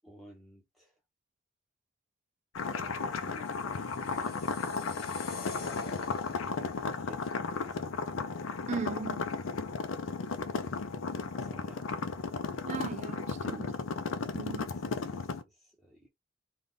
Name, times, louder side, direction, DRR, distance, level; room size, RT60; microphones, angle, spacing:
voice 1, 0.0-1.0 2.8-4.5 7.0-8.1 11.4-11.9 14.4-16.1, equal, ahead, 1.0 m, -55 dB
sound 1, 2.5-15.4, left 4 dB, 85° left, 0.5 m, -35 dB
sound 2, 3.5-6.7, left 4 dB, 50° left, 0.8 m, -45 dB
voice 2, 8.7-9.3 12.7-13.7 14.3-14.7, right 5 dB, 35° right, 0.3 m, -38 dB
3.4 x 2.4 x 3.9 m
head